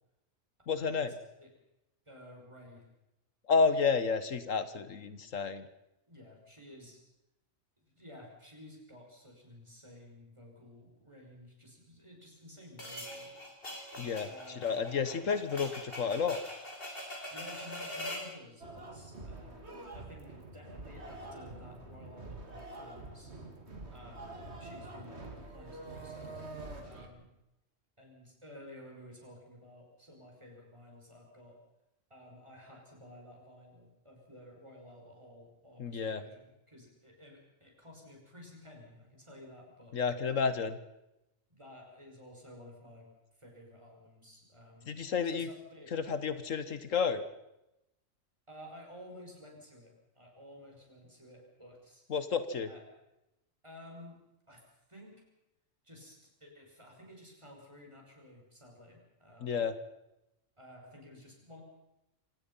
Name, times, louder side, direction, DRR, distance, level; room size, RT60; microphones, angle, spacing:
voice 1, 0.7-1.1 3.5-5.6 14.0-14.3 14.6-16.4 35.8-36.2 39.9-40.8 44.9-45.5 45.9-47.2 52.1-52.7 59.4-59.7, left 5 dB, 75° left, 12 dB, 1.6 m, -31 dB
voice 2, 2.1-2.9 6.1-7.0 7.8-13.9 14.2-15.3 17.1-23.3 23.9-27.3 28.0-31.6 32.1-40.0 41.5-43.1 43.3-44.9 45.2-45.9 48.5-52.0 52.7-52.8 53.6-54.2 54.5-55.2 55.8-59.7 60.6-61.6, left 1 dB, 20° right, 0 dB, 5.8 m, -53 dB
sound 1, 12.8-18.3, left 1 dB, 45° left, 4.0 m, -43 dB
sound 2, 18.6-27.1, right 2 dB, 55° right, 2.7 m, -46 dB
26.5 x 18.0 x 5.6 m, 0.90 s
omnidirectional pair, 1.3 m